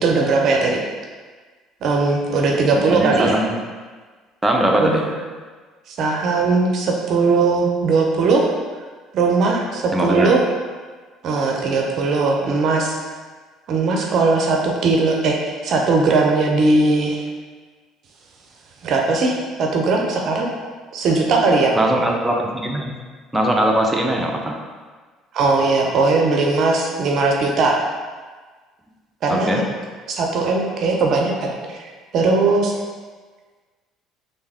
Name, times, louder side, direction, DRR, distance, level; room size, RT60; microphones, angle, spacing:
voice 1, 0.0-0.8 1.8-3.4 4.8-5.0 5.9-8.5 9.1-10.4 11.2-13.0 13.7-17.2 18.8-20.5 20.9-21.8 25.3-27.8 29.2-29.6 30.1-31.8 32.1-32.7, right 3 dB, 55° right, 0 dB, 0.5 m, -19 dB
voice 2, 2.9-3.5 4.4-5.1 9.9-10.3 21.7-23.0 23.3-24.5 29.3-29.6, right 1 dB, 10° right, 0 dB, 0.6 m, -20 dB
3.3 x 2.6 x 3.4 m, 1.4 s
hypercardioid pair, 60°, 0 cm